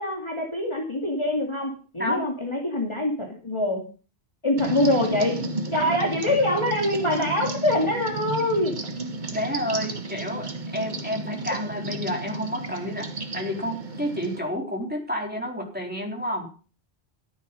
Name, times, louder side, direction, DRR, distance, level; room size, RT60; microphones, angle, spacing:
voice 1, 0.0-3.8 4.4-5.4 5.7-8.8, left 1 dB, 25° left, 0 dB, 2.6 m, -24 dB
sound 1, 4.6-14.4, right 2 dB, 45° right, 1.4 m, -33 dB
voice 2, 9.3-13.1 13.3-16.5, equal, 10° right, 0 dB, 3.9 m, -30 dB
14.5 x 9.1 x 5.4 m, 0.37 s
omnidirectional pair, 1.1 m